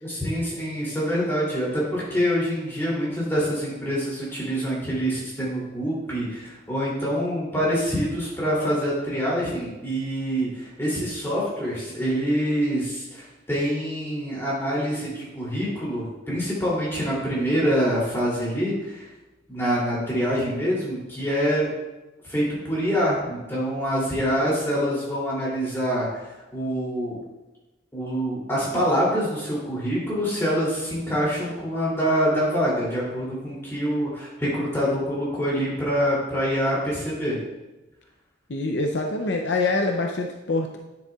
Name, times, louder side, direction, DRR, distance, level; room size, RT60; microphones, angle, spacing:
voice 1, 0.0-19.1 19.5-21.7 22.3-26.2 26.5-27.2 27.9-37.3, equal, 10° left, -6 dB, 2.8 m, -25 dB
voice 2, 38.5-40.8, left 2 dB, 65° left, 2 dB, 0.6 m, -25 dB
9.9 x 7.2 x 2.4 m, 1.1 s
head